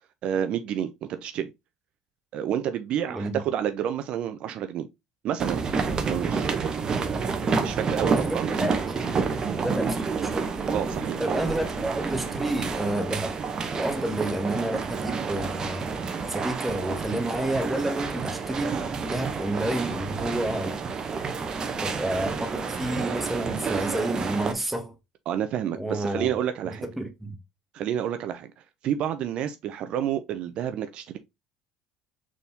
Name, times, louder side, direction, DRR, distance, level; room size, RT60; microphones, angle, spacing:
voice 1, 0.2-1.5 2.3-4.9 5.2-6.8 7.4-8.5 10.7-11.5 25.3-26.9 27.7-28.5 28.8-31.2, right 9 dB, 60° right, 0.4 m, -29 dB
voice 2, 3.1-3.4 8.0-8.8 9.1-10.5 11.2-13.4 13.7-15.9 16.3-18.7 19.1-20.8 21.8-24.9 25.7-26.3 26.6-27.4, right 1 dB, 5° right, 1.1 m, -30 dB
sound 1, 5.4-24.5, right 5 dB, 35° right, 0.8 m, -29 dB
sound 2, 10.5-14.8, left 1 dB, 20° left, 1.8 m, -45 dB
4.1 x 3.5 x 2.7 m
supercardioid pair, 85°, 2 cm